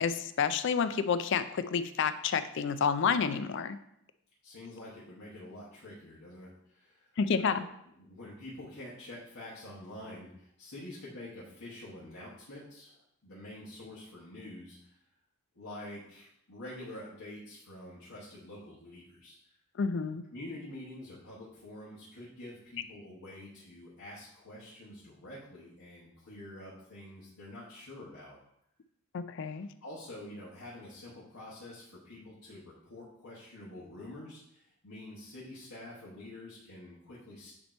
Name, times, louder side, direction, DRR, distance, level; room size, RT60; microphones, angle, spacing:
voice 1, 0.0-3.8 7.2-7.6 19.8-20.2 29.1-29.7, left 6 dB, 55° left, 12 dB, 0.4 m, -29 dB
voice 2, 4.4-7.7 8.0-13.0 13.2-15.0 15.5-19.4 20.3-28.4 29.8-37.5, left 1 dB, 85° left, -8 dB, 1.4 m, -47 dB
8.6 x 2.9 x 4.4 m, 0.75 s
head